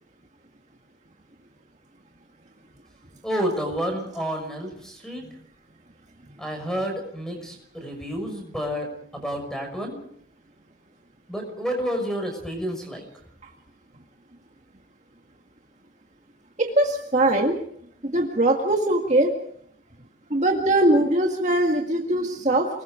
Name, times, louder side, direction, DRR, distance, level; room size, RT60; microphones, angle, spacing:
voice 1, 3.2-5.2 6.4-10.0 11.3-13.0, equal, 5° left, 3 dB, 6.1 m, -30 dB
voice 2, 16.6-17.6 18.0-19.3 20.3-22.7, right 1 dB, 35° right, 1 dB, 1.9 m, -21 dB
29.0 x 20.5 x 5.1 m, 0.67 s
head